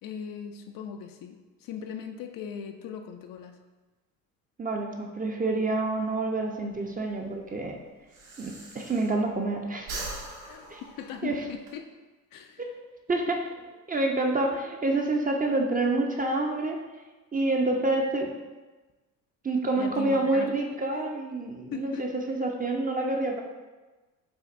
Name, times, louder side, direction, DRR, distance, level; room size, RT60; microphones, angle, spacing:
voice 1, 0.0-3.6 10.4-11.9 12.3-12.6 19.8-20.6 20.9-21.0 21.7-22.1, left 7 dB, 55° left, 6 dB, 0.5 m, -39 dB
voice 2, 4.6-7.8 8.4-9.9 10.7-10.8 11.2-11.4 13.1-13.5 13.9-16.8 17.3-18.3 19.4-23.4, right 2 dB, 20° right, 2 dB, 0.6 m, -27 dB
Breathing, 6.7-9.5 9.8-11.7, right 2 dB, 90° right, 0.8 m, -41 dB
7.1 x 2.5 x 2.5 m, 1.2 s
hypercardioid pair, 65°, 41 cm